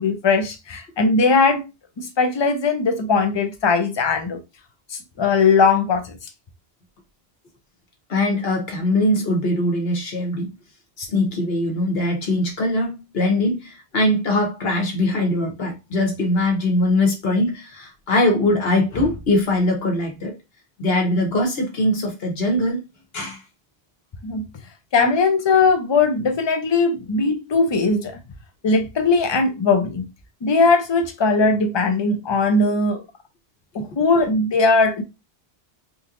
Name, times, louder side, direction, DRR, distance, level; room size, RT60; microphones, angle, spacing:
voice 1, 0.0-1.6 2.0-4.4 4.9-6.2 24.2-24.4 24.9-28.2 28.6-30.0 30.4-33.0 33.7-35.0, left 4 dB, 35° left, 0.5 m, -19 dB
voice 2, 8.1-10.5 11.0-20.3 20.8-22.8 23.1-23.4, left 1 dB, 65° left, 1.4 m, -21 dB
3.8 x 2.9 x 2.5 m
omnidirectional pair, 1.1 m